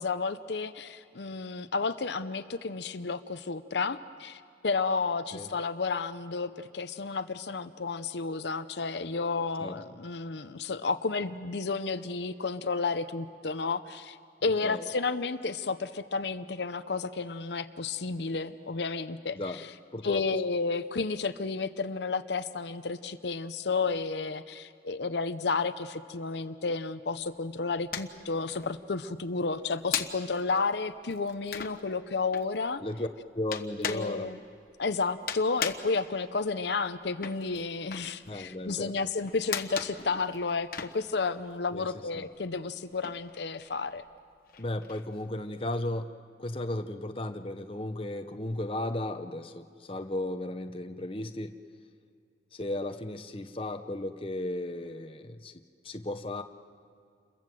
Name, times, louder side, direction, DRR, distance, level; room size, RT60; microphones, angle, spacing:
voice 1, 0.0-14.2 14.4-19.4 20.0-32.8 33.8-34.4 34.8-44.0, left 4 dB, 70° left, 10 dB, 0.7 m, -32 dB
voice 2, 19.9-20.2 32.8-33.1 33.3-34.3 38.3-39.0 41.7-42.3 44.6-46.1 46.4-51.6 52.5-55.5 55.8-56.4, left 1 dB, 30° left, 7 dB, 0.9 m, -35 dB
sound 1, 27.1-28.2 28.5-41.9 42.1-45.8, left 8 dB, 50° left, 1.2 m, -38 dB
28.5 x 22.0 x 7.7 m, 2.4 s
head